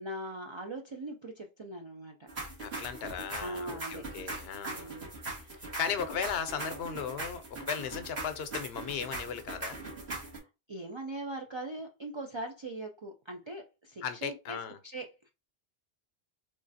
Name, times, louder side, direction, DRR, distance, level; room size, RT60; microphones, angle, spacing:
voice 1, 0.0-2.3 3.0-3.1 3.4-4.1 4.7-5.1 5.4-5.6 10.1-15.3, right 1 dB, 50° right, 0.3 m, -41 dB
sound 1, 2.3-10.4, right 2 dB, 80° right, 2.0 m, -40 dB
voice 2, 2.6-4.9 5.8-9.8 14.0-14.8, left 7 dB, 75° left, 0.8 m, -36 dB
3.7 x 3.1 x 2.6 m
omnidirectional pair, 1.1 m